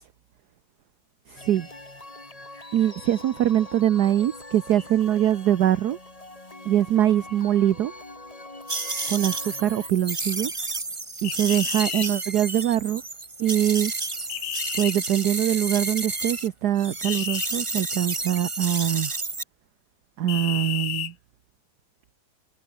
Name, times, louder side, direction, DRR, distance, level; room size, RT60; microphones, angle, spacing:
voice 1, 1.3-1.7 2.7-6.0 6.7-7.9 9.1-10.5 11.2-13.0 13.4-13.9 14.8-19.1 20.2-21.1, right 11 dB, 60° right, 1.3 m, -23 dB
sound 1, 1.4-9.9, left 2 dB, 15° left, 3.0 m, -43 dB
sound 2, 8.7-16.5 16.8-19.4, right 3 dB, 15° right, 1.3 m, -31 dB
sound 3, 11.2-12.1 14.3-14.9 17.0-17.5 20.3-21.1, left 12 dB, 75° left, 1.7 m, -31 dB
omnidirectional pair, 2.2 m